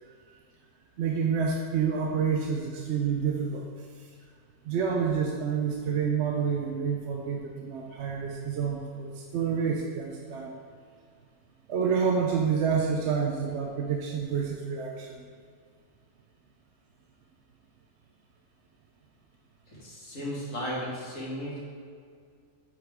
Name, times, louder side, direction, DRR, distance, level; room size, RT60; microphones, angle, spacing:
voice 1, 1.0-3.7 4.6-10.5 11.7-15.1, right 6 dB, 65° right, 0 dB, 0.9 m, -28 dB
voice 2, 19.7-21.6, equal, 85° left, -6 dB, 2.2 m, -35 dB
7.2 x 5.8 x 3.5 m, 2.1 s
omnidirectional pair, 1.3 m